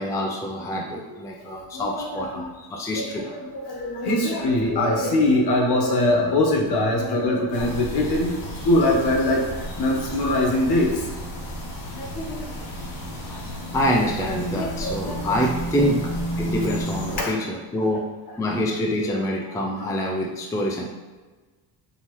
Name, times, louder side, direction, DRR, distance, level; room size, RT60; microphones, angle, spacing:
voice 1, 0.0-3.2 11.6-12.0 13.3-18.1 18.4-20.8, equal, 10° left, -1 dB, 0.4 m, -26 dB
voice 2, 1.7-2.5 2.9-8.4 8.6-9.4 9.8-10.9 12.0-12.5 14.2-14.3 14.6-15.2 15.8-15.9 16.6-16.8 17.2-17.4 19.1-19.2 19.7-19.8, left 1 dB, 60° left, -1 dB, 1.1 m, -23 dB
sound 1, 7.5-17.2, equal, 85° left, 1.3 m, -32 dB
5.4 x 2.8 x 3.0 m, 1.3 s
cardioid pair, 140°, 43 cm